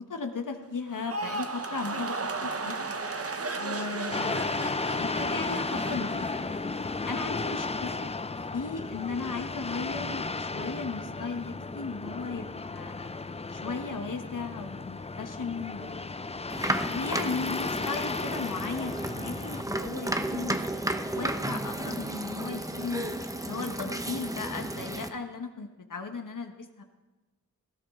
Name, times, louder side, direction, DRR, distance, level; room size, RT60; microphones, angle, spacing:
voice 1, 0.0-2.2 2.4-2.9 3.6-6.3 6.8-8.1 8.5-13.1 13.5-16.2 16.8-20.6 21.1-23.1 23.4-26.8, left 4 dB, 65° left, 6 dB, 1.3 m, -36 dB
sound 1, 0.9-7.2 7.5-8.0, right 3 dB, 40° right, 1.1 m, -35 dB
sound 2, 4.1-19.6, left 3 dB, 20° left, 0.5 m, -34 dB
sound 3, 16.5-25.1, right 1 dB, 10° right, 0.9 m, -33 dB
17.5 x 12.5 x 3.7 m, 1.2 s
cardioid pair, 45°, 34 cm